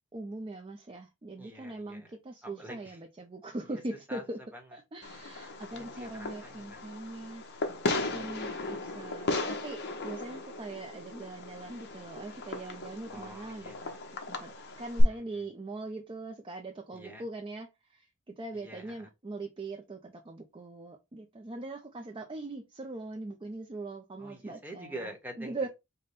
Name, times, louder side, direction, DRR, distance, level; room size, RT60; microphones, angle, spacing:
voice 1, 0.1-4.4 4.7-7.4 7.9-14.0 14.3-14.5 14.8-24.9 25.4-25.7, right 2 dB, 25° right, 0.5 m, -41 dB
voice 2, 1.4-2.1 2.4-3.0 3.6-3.8 4.1-4.8 5.7-6.9 8.0-8.3 13.1-13.8 15.0-15.5 16.9-17.2 18.5-19.1 24.2-25.5, right 1 dB, 10° right, 1.0 m, -47 dB
Fireworks, 5.0-15.0, left 2 dB, 50° left, 0.9 m, -36 dB
5.1 x 2.2 x 4.0 m
head